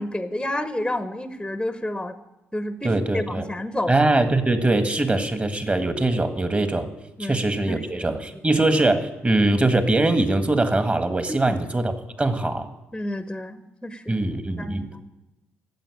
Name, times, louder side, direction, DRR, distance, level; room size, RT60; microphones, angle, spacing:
voice 1, 0.0-2.2 2.5-3.9 7.2-8.1 8.3-8.4 11.3-11.6 12.9-14.2 14.6-15.0, left 1 dB, 5° left, 11 dB, 1.1 m, -30 dB
voice 2, 2.8-3.4 3.9-6.9 7.2-11.9 12.2-12.7 14.1-14.9, right 2 dB, 20° right, 9 dB, 1.8 m, -22 dB
15.5 x 7.9 x 9.9 m, 0.98 s
figure-of-eight pair, 40°, 6 cm